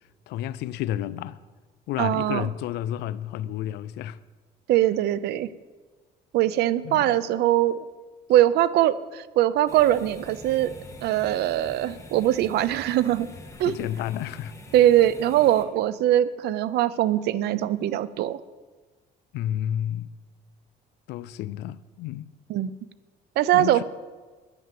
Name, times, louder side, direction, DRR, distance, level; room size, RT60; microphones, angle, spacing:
voice 1, 0.3-1.4 1.9-4.2 6.8-7.2 13.6-14.5 19.3-20.1 21.1-22.3 23.5-23.8, left 12 dB, 85° left, 0.6 m, -31 dB
voice 2, 2.0-2.5 4.7-5.5 6.3-7.8 8.3-10.7 11.0-13.3 13.6-13.7 14.7-18.4 22.5-22.7 23.4-23.8, right 13 dB, 75° right, 0.6 m, -22 dB
sound 1, 9.7-15.6, left 1 dB, 15° left, 2.1 m, -45 dB
10.5 x 10.5 x 7.7 m
cardioid pair, 110°, 17 cm